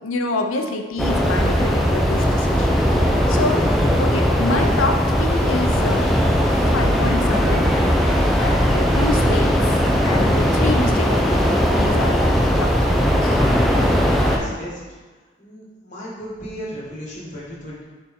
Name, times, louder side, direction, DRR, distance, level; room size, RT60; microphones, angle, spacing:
voice 1, 0.0-2.8 3.3-3.6 4.0-6.1 6.4-7.7 8.4-9.8 10.0-13.4, left 3 dB, 85° left, 4 dB, 0.7 m, -27 dB
sound 1, 1.0-14.4, equal, ahead, 0.5 m, -18 dB
voice 2, 14.2-14.8 15.4-17.8, equal, 35° left, -5 dB, 1.5 m, -35 dB
6.9 x 4.2 x 3.6 m, 1.3 s
head